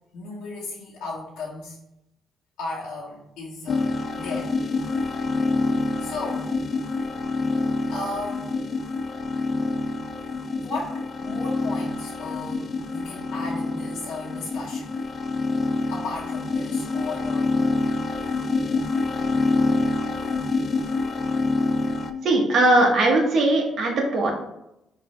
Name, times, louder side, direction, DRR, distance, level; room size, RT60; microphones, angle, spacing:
voice 1, 0.1-1.8 2.6-4.5 6.0-6.5 7.9-8.6 10.6-15.0 15.9-17.7, left 2 dB, 85° left, -7 dB, 1.3 m, -35 dB
sound 1, 3.7-22.1, left 3 dB, 45° left, 0.4 m, -26 dB
voice 2, 22.2-24.3, right 2 dB, 65° right, 0 dB, 1.3 m, -19 dB
4.7 x 3.3 x 3.2 m, 0.84 s
cardioid pair, 90°, 0 cm